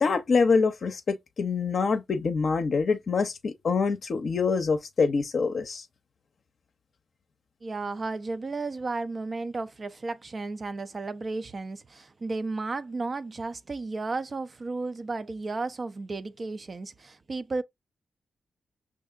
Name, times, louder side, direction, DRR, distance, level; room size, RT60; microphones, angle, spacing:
voice 1, 0.0-5.8, left 4 dB, 65° left, 0.5 m, -25 dB
voice 2, 7.6-17.6, right 3 dB, 45° right, 0.4 m, -33 dB
5.5 x 2.6 x 2.4 m
supercardioid pair, 40°, 0 cm